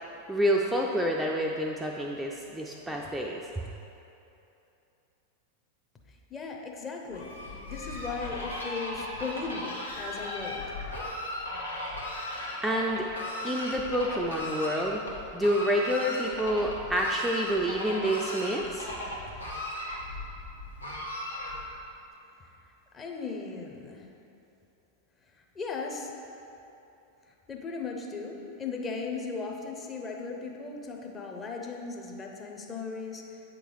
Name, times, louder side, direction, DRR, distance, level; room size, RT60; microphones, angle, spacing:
voice 1, 0.3-3.5 12.6-13.1 13.4-15.0 15.3-18.9, equal, 5° right, -1 dB, 0.4 m, -28 dB
voice 2, 6.1-10.8 22.4-22.5 22.9-24.1 25.3-26.1 27.3-33.4, left 4 dB, 20° left, 1 dB, 0.7 m, -37 dB
Fowl, 7.1-21.8, left 1 dB, 80° left, 1.0 m, -37 dB
8.1 x 3.8 x 4.6 m, 2.8 s
figure-of-eight pair, 90°, 0 cm